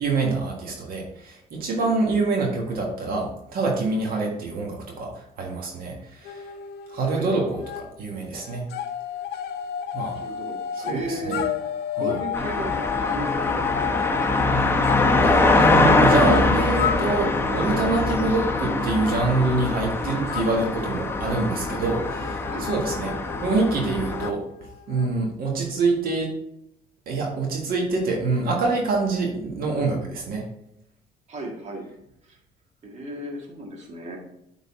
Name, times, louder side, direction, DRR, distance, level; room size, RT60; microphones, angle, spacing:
voice 1, 0.0-6.5 6.9-8.6 9.9-10.1 10.7-11.4 12.0-12.2 15.2-24.4 24.9-26.4 27.1-30.4, right 3 dB, 60° right, 0 dB, 1.5 m, -26 dB
sound 1, 6.3-7.9 8.1-25.2, left 9 dB, 75° left, 0.5 m, -32 dB
voice 2, 10.1-11.5 12.0-14.3 22.4-22.7 31.3-31.9 32.2-32.4 32.8-34.2, right 1 dB, 40° right, 0 dB, 1.6 m, -34 dB
sound 2, 12.3-24.3, left 2 dB, 15° left, 0.8 m, -23 dB
8.4 x 4.0 x 3.6 m, 0.79 s
cardioid pair, 110°, 17 cm